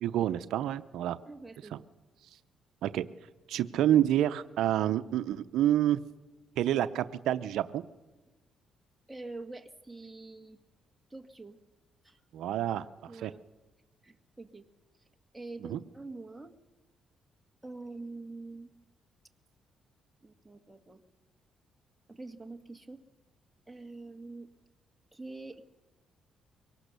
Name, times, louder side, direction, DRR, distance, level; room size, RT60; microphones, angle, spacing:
voice 1, 0.0-1.2 1.7-1.8 2.8-3.1 3.5-6.0 6.6-7.8 12.3-13.3 15.6-15.8, right 12 dB, 80° right, 12 dB, 0.6 m, -28 dB
voice 2, 1.2-1.9 9.1-10.6 11.1-11.6 12.0-12.2 13.1-13.4 14.0-14.7 15.3-16.5 17.6-18.7 20.2-21.0 22.1-23.0 23.7-24.5 25.1-25.7, right 3 dB, 10° right, 5 dB, 1.7 m, -45 dB
23.5 x 18.0 x 6.8 m, 1.2 s
cardioid pair, 90°, 0 cm